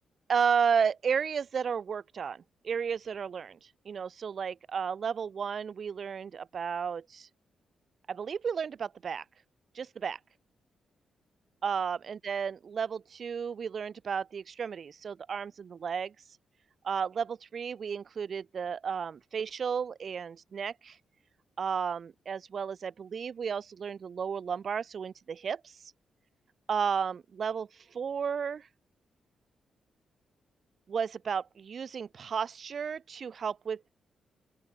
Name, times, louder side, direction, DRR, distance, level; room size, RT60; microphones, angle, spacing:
voice 1, 0.3-7.3 8.1-9.3 9.7-10.2 11.6-16.4 16.8-21.0 21.6-25.9 26.7-28.7 30.9-33.9, right 6 dB, 55° right, 1.9 m, -33 dB
open air
cardioid pair, 85°, 0 cm